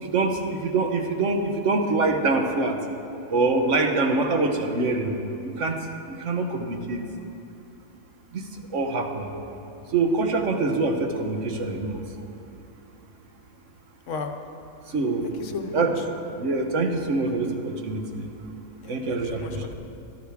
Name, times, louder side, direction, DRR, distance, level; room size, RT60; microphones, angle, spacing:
voice 1, 0.0-2.8 3.3-5.1 5.4-7.0 8.3-9.3 9.9-12.0 14.9-15.3 15.7-15.9 16.3-18.3 18.9-19.6, right 3 dB, 60° right, 4 dB, 1.3 m, -25 dB
voice 2, 15.2-16.0 18.8-19.7, left 4 dB, 60° left, 6 dB, 1.1 m, -35 dB
17.5 x 11.5 x 3.6 m, 2.9 s
omnidirectional pair, 1.6 m